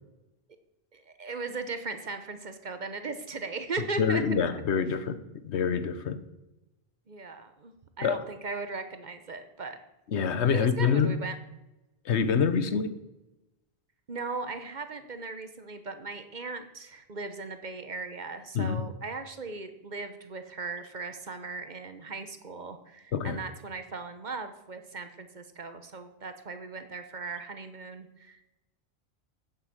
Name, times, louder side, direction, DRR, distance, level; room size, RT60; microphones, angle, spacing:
voice 1, 0.9-4.2 7.1-9.8 10.5-11.3 14.1-28.5, right 3 dB, 45° right, 9 dB, 1.0 m, -38 dB
voice 2, 4.0-6.2 8.0-8.2 10.1-11.2 12.0-13.0 18.5-18.8 23.1-23.4, left 6 dB, 80° left, 12 dB, 1.1 m, -26 dB
8.1 x 7.9 x 7.6 m, 0.99 s
omnidirectional pair, 1.1 m